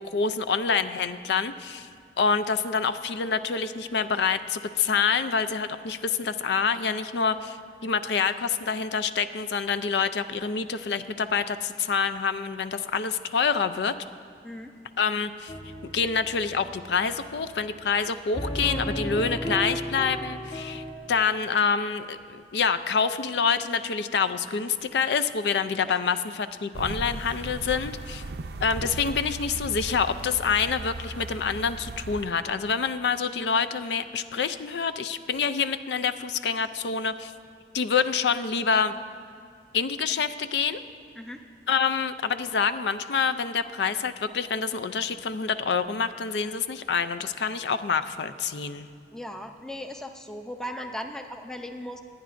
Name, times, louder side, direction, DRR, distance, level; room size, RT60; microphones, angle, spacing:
voice 1, 0.0-1.9 2.2-7.6 7.8-14.0 15.0-15.5 15.9-28.2 28.6-37.3 37.7-38.9 39.7-40.8 41.7-48.9, left 6 dB, 80° left, 12 dB, 0.4 m, -27 dB
voice 2, 14.4-14.8 25.9-26.0 41.2-41.4 49.1-52.0, equal, 5° left, 5 dB, 0.5 m, -37 dB
sound 1, 15.5-20.9, equal, 30° left, 1.1 m, -35 dB
sound 2, 26.7-32.3, right 2 dB, 70° right, 0.5 m, -37 dB
27.5 x 9.3 x 2.5 m, 2.3 s
head